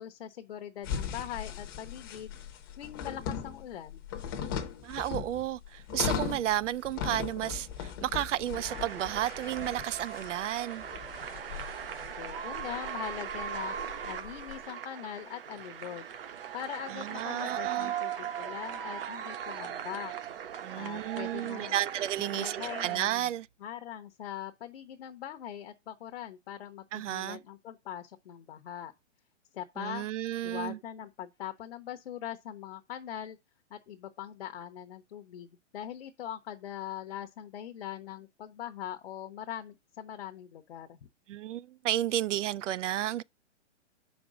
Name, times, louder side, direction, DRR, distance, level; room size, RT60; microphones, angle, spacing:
voice 1, 0.0-2.3 2.8-4.1 12.2-13.7 14.1-16.1 16.5-20.1 20.7-21.8 22.2-23.3 23.6-28.9 29.5-30.1 30.4-33.4 33.7-41.0, left 10 dB, 55° left, 0.8 m, -41 dB
sound 1, 0.8-14.6, left 8 dB, 20° left, 0.7 m, -39 dB
voice 2, 4.8-10.8 17.0-17.9 20.6-23.5 26.9-27.4 29.8-30.8 41.3-43.2, right 12 dB, 90° right, 0.5 m, -32 dB
sound 2, 8.5-23.0, right 9 dB, 50° right, 1.0 m, -39 dB
7.0 x 5.2 x 4.9 m
hypercardioid pair, 170°, 36 cm